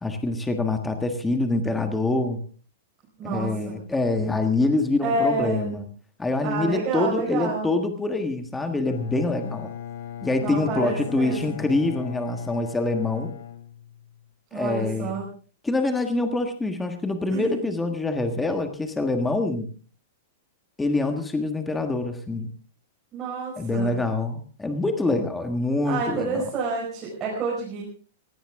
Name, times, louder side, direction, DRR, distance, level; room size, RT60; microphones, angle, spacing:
voice 1, 0.0-2.4 3.2-5.8 6.2-9.7 10.2-13.3 14.5-15.2 15.6-19.7 20.8-22.5 23.6-26.4, left 2 dB, 5° left, 6 dB, 1.4 m, -25 dB
voice 2, 3.2-3.8 5.0-5.8 6.4-7.7 10.4-11.6 14.5-15.2 17.3-17.7 23.1-24.0 25.8-27.8, right 3 dB, 20° right, -6 dB, 4.9 m, -29 dB
Bowed string instrument, 8.8-14.3, left 10 dB, 80° left, 3.2 m, -38 dB
18.5 x 16.0 x 3.6 m, 0.41 s
supercardioid pair, 165°, 0 cm